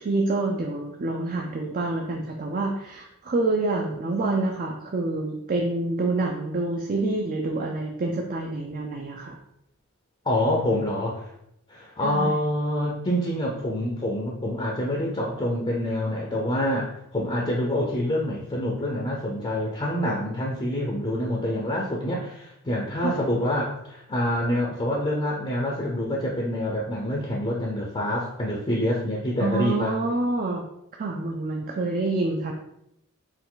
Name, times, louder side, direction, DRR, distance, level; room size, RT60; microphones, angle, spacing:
voice 1, 0.0-9.4 12.0-12.4 23.0-23.2 29.4-30.6 31.0-32.5, right 2 dB, 40° right, 1 dB, 0.4 m, -27 dB
voice 2, 10.2-11.3 11.7-30.0, left 1 dB, 25° left, -2 dB, 0.6 m, -26 dB
4.5 x 2.5 x 3.8 m, 0.79 s
head